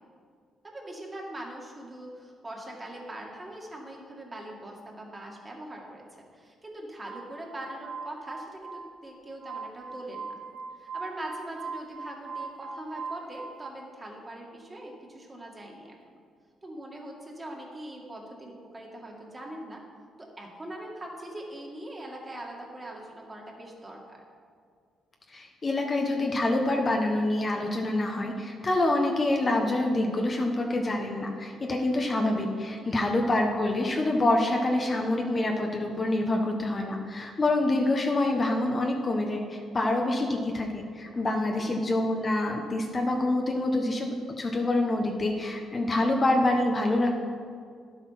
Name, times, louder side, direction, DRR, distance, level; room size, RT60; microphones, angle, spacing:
voice 1, 0.6-6.0 6.3-10.4 10.7-16.0 16.6-19.8 20.2-24.2 32.8-33.0 41.1-41.7, right 1 dB, 20° right, -1 dB, 2.3 m, -42 dB
Glass, 7.0-13.7, right 4 dB, 60° right, 0.6 m, -41 dB
voice 2, 25.3-47.3, left 2 dB, 30° left, 2 dB, 1.2 m, -26 dB
11.0 x 8.0 x 5.9 m, 2.2 s
cardioid pair, 90°, 0 cm